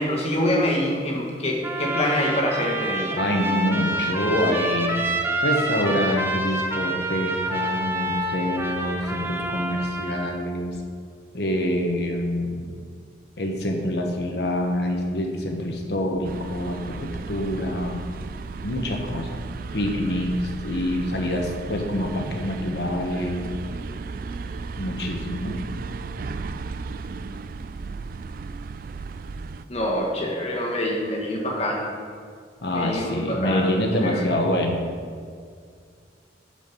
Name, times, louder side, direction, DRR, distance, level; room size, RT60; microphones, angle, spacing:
voice 1, 0.0-3.2 29.7-31.9 32.7-34.4, left 1 dB, 35° left, -1 dB, 1.7 m, -25 dB
Trumpet, 1.6-10.4, right 1 dB, 15° right, 0.8 m, -27 dB
voice 2, 3.1-5.0 5.4-10.7 11.3-12.7 13.4-16.8 17.3-18.0 18.6-19.5 19.7-20.3 20.6-23.4 24.8-25.6 32.6-34.9, left 1 dB, 65° left, 2 dB, 1.3 m, -26 dB
sound 1, 16.2-29.6, right 4 dB, 50° right, 0.3 m, -35 dB
12.0 x 5.1 x 5.4 m, 2.1 s
head